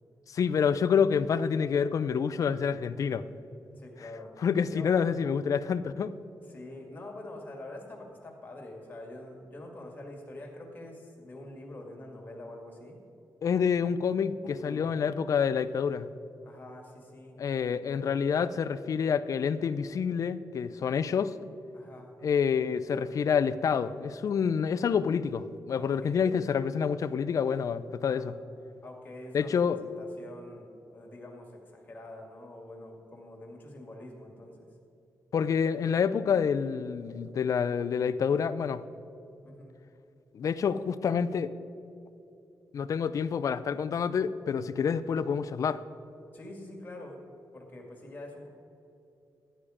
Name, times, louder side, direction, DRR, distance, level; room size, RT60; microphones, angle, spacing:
voice 1, 0.3-3.3 4.4-6.1 13.4-16.1 17.4-21.3 22.2-28.3 29.3-29.8 35.3-38.8 40.3-41.5 42.7-45.8, left 6 dB, 50° left, 14 dB, 0.4 m, -28 dB
voice 2, 3.7-4.3 4.7-4.9 6.5-13.0 14.4-14.9 16.4-17.4 21.7-22.1 25.7-26.4 28.0-28.3 28.8-29.5 29.8-34.7 39.4-39.8 46.3-47.2 47.5-48.5, left 1 dB, 25° left, 0 dB, 2.1 m, -45 dB
13.5 x 10.0 x 4.9 m, 2.8 s
wide cardioid pair, 150°, 7 cm